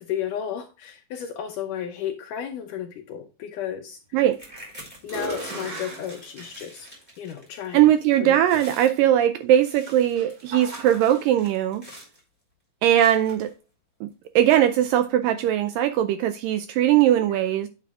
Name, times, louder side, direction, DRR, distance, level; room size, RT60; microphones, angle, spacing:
voice 1, 0.0-4.0 5.0-6.9 7.2-7.9 8.2-8.6 17.3-17.5, left 9 dB, 75° left, 1.9 m, -33 dB
sound 1, 4.2-4.7 5.0-6.9 7.7-7.8 9.5-11.2, right 2 dB, 40° right, 3.6 m, -38 dB
sound 2, 4.3-7.7 7.9-8.2 8.4-9.0 9.5-12.2 13.0-13.5 14.2-14.3 14.7-14.9, equal, 10° right, 3.5 m, -44 dB
voice 2, 7.7-11.8 12.8-13.5 14.0-14.1 14.4-17.7, right 11 dB, 85° right, 2.0 m, -20 dB
8.5 x 8.2 x 2.3 m
omnidirectional pair, 4.4 m